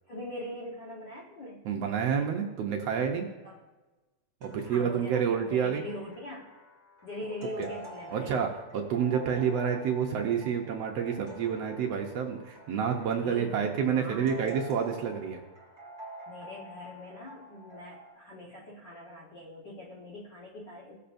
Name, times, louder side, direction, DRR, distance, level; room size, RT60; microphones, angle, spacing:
voice 1, 0.1-1.7 3.4-3.6 4.6-6.5 7.0-8.4 13.2-14.6 16.3-21.0, left 1 dB, 55° left, -5 dB, 1.3 m, -42 dB
voice 2, 1.6-3.3 4.4-5.8 7.6-7.7 8.1-15.4, right 7 dB, 70° right, 2 dB, 1.6 m, -29 dB
sound 1, 4.4-18.1, right 1 dB, 30° right, 0.4 m, -48 dB
18.0 x 6.8 x 2.6 m, 1.1 s
omnidirectional pair, 3.5 m